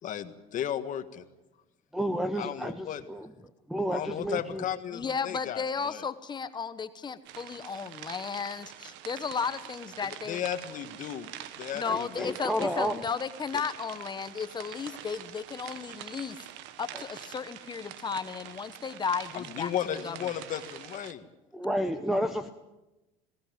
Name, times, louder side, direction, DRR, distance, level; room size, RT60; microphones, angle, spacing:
voice 1, 0.0-1.3 2.4-3.0 3.9-6.0 10.0-11.3 11.6-12.7 19.3-21.3, left 10 dB, 40° left, 10 dB, 1.7 m, -35 dB
voice 2, 1.9-3.3 3.7-4.6 11.9-13.0 21.5-22.5, equal, ahead, 10 dB, 0.9 m, -31 dB
voice 3, 4.9-10.4 11.7-16.4 16.8-19.7 20.0-20.2, left 6 dB, 25° left, 11 dB, 1.2 m, -34 dB
sound 1, 7.2-21.1, right 12 dB, 70° right, 1.3 m, -45 dB
21.5 x 17.0 x 9.2 m, 1.0 s
cardioid pair, 130°, 19 cm